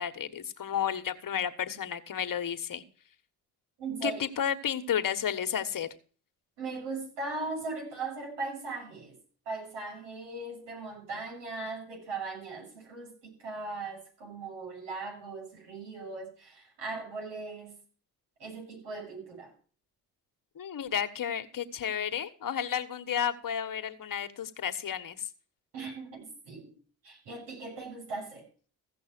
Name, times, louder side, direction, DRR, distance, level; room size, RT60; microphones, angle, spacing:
voice 1, 0.0-2.8 4.0-5.9 20.5-25.3, left 9 dB, 50° left, 9 dB, 1.4 m, -32 dB
voice 2, 3.8-4.2 6.6-9.1 9.5-17.7 18.4-19.5 25.7-26.7 27.0-28.5, right 3 dB, 80° right, 0 dB, 7.6 m, -39 dB
15.5 x 6.1 x 6.0 m, 0.40 s
supercardioid pair, 60°, 41 cm